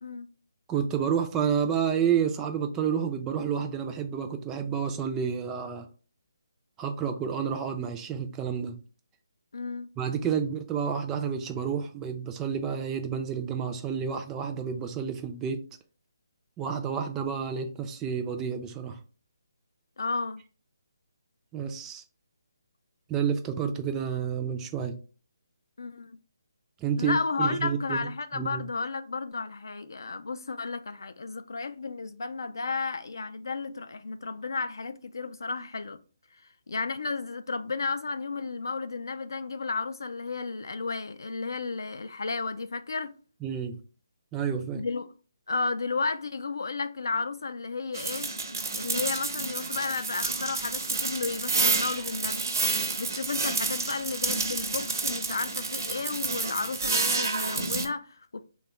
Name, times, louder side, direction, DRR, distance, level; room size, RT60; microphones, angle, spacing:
voice 1, 0.7-5.9 6.8-8.7 10.0-15.6 16.6-19.0 21.5-22.0 23.1-24.9 26.8-28.0 28.3-28.6 43.4-43.8 44.3-44.8, right 7 dB, 15° right, 0.3 m, -30 dB
voice 2, 9.5-9.9 20.0-20.4 25.8-26.2 27.0-36.0 36.3-43.1 44.7-45.1 45.5-48.3 48.7-52.5 53.0-58.4, left 4 dB, 70° left, 0.3 m, -33 dB
sound 1, 47.9-57.9, right 3 dB, 55° right, 0.6 m, -29 dB
3.4 x 2.2 x 2.9 m
figure-of-eight pair, 145°, 2 cm